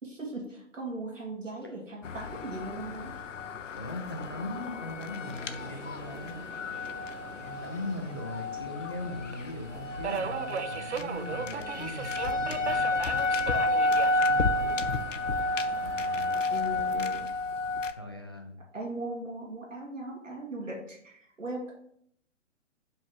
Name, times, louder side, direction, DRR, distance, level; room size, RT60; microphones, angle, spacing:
voice 1, 0.0-3.1 16.5-17.3 18.7-21.7, right 2 dB, 80° right, -2 dB, 1.6 m, -38 dB
sound 1, 2.0-17.9, left 2 dB, 80° left, 0.6 m, -31 dB
voice 2, 3.8-6.4 7.4-12.9 14.2-15.0 15.8-16.4 18.0-18.6, left 1 dB, 20° left, 2 dB, 0.3 m, -39 dB
Subway metro underground, 5.2-17.3, right 6 dB, 65° right, 0.6 m, -40 dB
5.2 x 3.5 x 5.4 m, 0.69 s
figure-of-eight pair, 125°, 37 cm